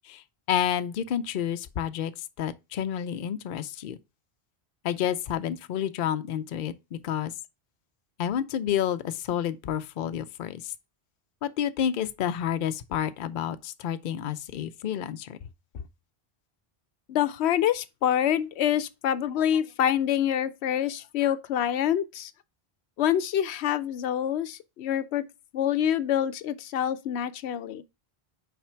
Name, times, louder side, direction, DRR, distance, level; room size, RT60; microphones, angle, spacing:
voice 1, 0.0-4.0 4.8-7.3 8.2-10.7 11.4-15.4 15.7-15.8, left 9 dB, 60° left, 0.6 m, -30 dB
voice 2, 17.1-22.3 23.0-25.2 25.5-27.8, left 10 dB, 85° left, 0.8 m, -26 dB
5.8 x 4.4 x 4.4 m
omnidirectional pair, 1.1 m